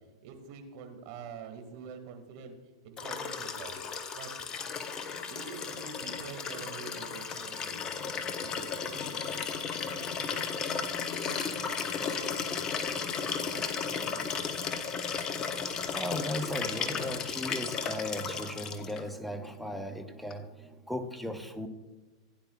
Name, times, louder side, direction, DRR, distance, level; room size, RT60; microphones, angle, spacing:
voice 1, 0.2-2.6 2.8-3.8 4.1-4.3 5.2-7.9 8.2-9.5 9.8-10.6 11.1-11.6 12.1-12.4 12.8-14.5, right 5 dB, 55° right, 5 dB, 1.9 m, -47 dB
Liquid, 3.0-19.0 20.3-20.4, left 6 dB, 30° left, 0.9 m, -34 dB
voice 2, 15.9-21.7, left 1 dB, ahead, 8 dB, 0.9 m, -37 dB
16.0 x 9.7 x 2.3 m, 1.2 s
hypercardioid pair, 110°, 2 cm